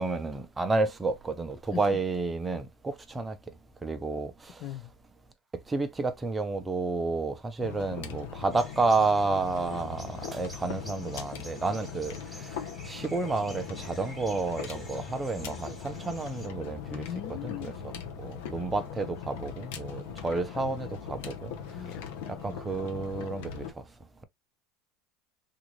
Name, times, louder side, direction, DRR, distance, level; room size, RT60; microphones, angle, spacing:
voice 1, 0.0-3.5 3.8-4.7 5.7-22.0 22.3-23.8, right 3 dB, 10° right, 0.6 m, -31 dB
sound 1, 7.6-23.7, left 7 dB, 75° left, 0.8 m, -40 dB
sound 2, 8.5-16.5, equal, 5° left, 1.5 m, -50 dB
voice 2, 16.9-17.7 21.7-22.3, left 11 dB, 45° left, 0.4 m, -39 dB
3.6 x 2.5 x 3.0 m
supercardioid pair, 150°, 0 cm